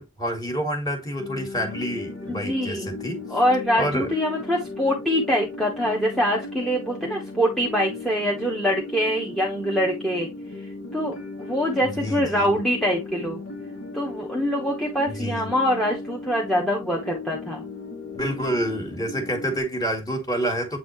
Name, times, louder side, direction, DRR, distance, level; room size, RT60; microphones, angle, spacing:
voice 1, 0.0-3.2 3.8-4.1 11.8-12.5 15.1-15.5 18.1-20.8, equal, 20° left, 1.8 m, -28 dB
sound 1, 1.2-19.6, left 2 dB, 70° left, 2.0 m, -37 dB
voice 2, 2.3-2.9 3.3-10.3 10.6-13.4 13.9-17.6, equal, ahead, 1.0 m, -24 dB
8.1 x 4.1 x 3.1 m
head